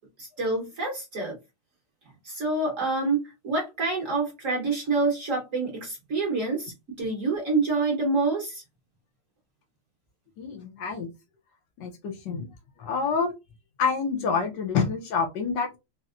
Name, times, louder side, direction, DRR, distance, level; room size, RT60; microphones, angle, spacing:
voice 1, 0.2-1.3 2.2-8.6, right 3 dB, 50° right, -1 dB, 1.1 m, -27 dB
voice 2, 10.4-11.1 11.8-12.5 12.8-13.3 13.8-15.8, left 5 dB, 70° left, 3 dB, 1.2 m, -27 dB
4.1 x 2.0 x 2.4 m, 0.23 s
omnidirectional pair, 2.2 m